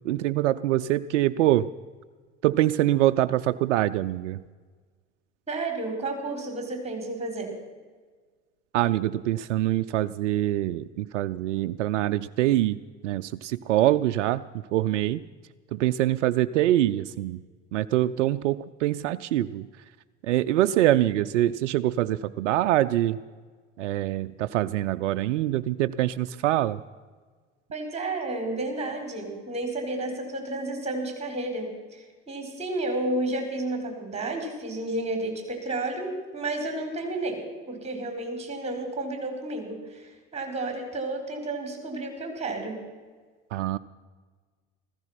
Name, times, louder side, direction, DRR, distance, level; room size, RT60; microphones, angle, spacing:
voice 1, 0.0-1.7 2.4-4.4 8.7-12.8 13.0-14.4 14.7-15.2 15.7-17.4 17.7-19.7 20.3-23.2 23.8-26.8 43.5-43.8, right 14 dB, 75° right, 11 dB, 0.5 m, -24 dB
voice 2, 5.5-7.5 27.7-37.4 37.7-42.8, right 2 dB, 15° right, 4 dB, 5.0 m, -31 dB
15.0 x 15.0 x 5.9 m, 1.5 s
hypercardioid pair, 75°, 36 cm